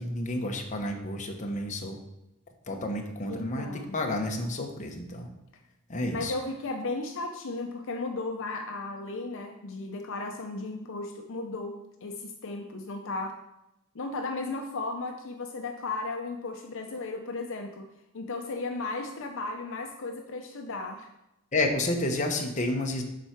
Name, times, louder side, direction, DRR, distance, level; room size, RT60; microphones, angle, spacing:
voice 1, 0.0-2.0 2.7-5.3 5.9-6.3 21.5-23.0, left 1 dB, 35° left, 2 dB, 1.0 m, -30 dB
voice 2, 3.3-3.9 6.1-13.4 13.9-17.9 18.1-21.1, left 3 dB, 60° left, 4 dB, 0.6 m, -35 dB
7.6 x 4.4 x 5.9 m, 0.93 s
head